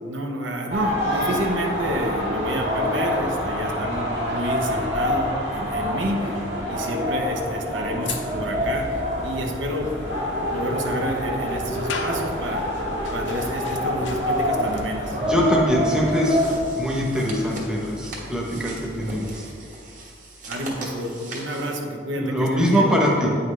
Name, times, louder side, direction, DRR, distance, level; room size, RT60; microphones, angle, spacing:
voice 1, 0.0-6.4 6.7-9.9 10.4-12.6 13.1-15.2 20.5-22.8, equal, 90° right, 2 dB, 0.9 m, -29 dB
sound 1, 0.7-16.6, equal, 60° right, 1.7 m, -26 dB
sound 2, 8.0-21.3, left 4 dB, 75° left, 0.6 m, -40 dB
voice 2, 15.1-16.4 16.8-19.5 22.1-23.3, equal, 5° right, -2 dB, 0.9 m, -23 dB
sound 3, 15.9-21.8, right 2 dB, 45° right, 1.2 m, -40 dB
8.8 x 5.6 x 3.2 m, 2.3 s
head